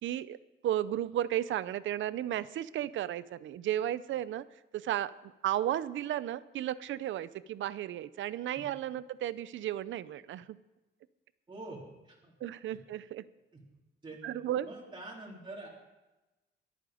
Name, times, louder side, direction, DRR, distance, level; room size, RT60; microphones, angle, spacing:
voice 1, 0.0-4.5 4.7-10.6 12.4-13.2 14.2-14.7, right 12 dB, 75° right, 17 dB, 0.6 m, -34 dB
voice 2, 11.5-12.3 14.0-14.2 14.6-15.7, right 2 dB, 25° right, -4 dB, 3.5 m, -45 dB
23.0 x 8.9 x 5.0 m, 1.1 s
cardioid pair, 115°, 20 cm